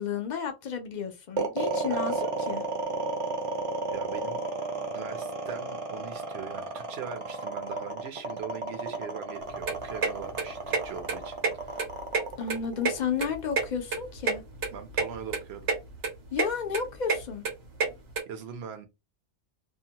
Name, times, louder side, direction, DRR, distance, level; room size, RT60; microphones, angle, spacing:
voice 1, 0.0-2.7 12.4-14.4 16.3-17.4, left 7 dB, 55° left, 0.5 m, -32 dB
sound 1, 1.4-13.6, right 3 dB, 40° right, 0.5 m, -32 dB
voice 2, 3.9-4.4 4.9-11.8 14.7-15.7 18.3-18.9, right 7 dB, 65° right, 1.0 m, -41 dB
sound 2, 9.4-18.2, right 4 dB, 85° right, 1.3 m, -30 dB
2.7 x 2.1 x 2.7 m
omnidirectional pair, 1.2 m